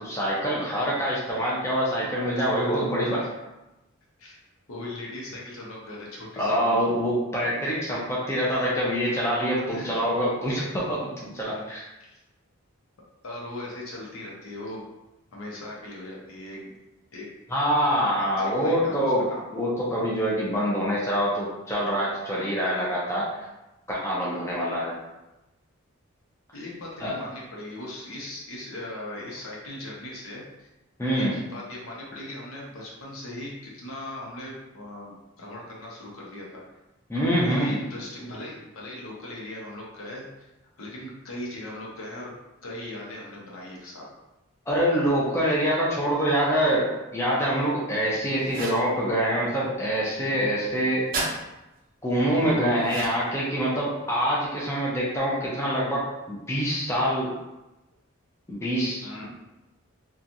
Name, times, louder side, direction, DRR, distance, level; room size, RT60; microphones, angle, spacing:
voice 1, 0.0-3.3 6.4-11.8 17.5-19.3 19.5-23.3 23.9-25.0 27.0-27.1 31.0-31.3 37.1-37.8 44.7-51.3 52.0-57.3 58.5-59.3, equal, 10° left, -6 dB, 0.5 m, -25 dB
voice 2, 4.7-6.6 9.7-10.0 11.5-11.6 12.0-12.2 13.2-14.9 15.3-16.7 17.1-17.3 18.1-19.4 26.5-30.7 31.1-36.6 37.1-40.5 40.8-42.3 42.6-44.0 52.3-52.6 59.0-59.3, left 1 dB, 75° left, -4 dB, 0.7 m, -39 dB
sound 1, 48.5-48.9 51.1-51.3 52.8-53.4, right 3 dB, 40° right, 0.5 m, -31 dB
2.9 x 2.3 x 2.5 m, 0.99 s
head